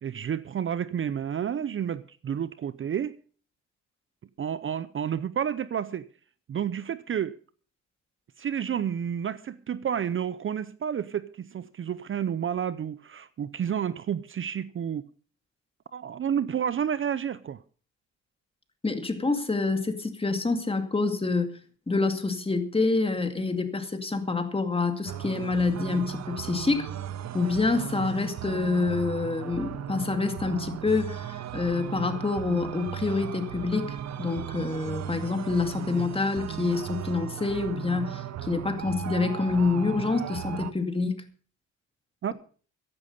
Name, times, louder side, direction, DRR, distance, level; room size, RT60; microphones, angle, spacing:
voice 1, 0.0-3.2 4.4-6.1 6.5-7.4 8.4-15.1 15.9-17.6 42.2-42.3, right 8 dB, 40° right, 0.7 m, -30 dB
voice 2, 18.8-21.6 21.9-26.9 27.3-41.3, left 3 dB, 20° left, 2.3 m, -27 dB
sound 1, 25.1-40.7, right 10 dB, 65° right, 1.1 m, -36 dB
15.0 x 11.0 x 5.4 m
cardioid pair, 90°, 30 cm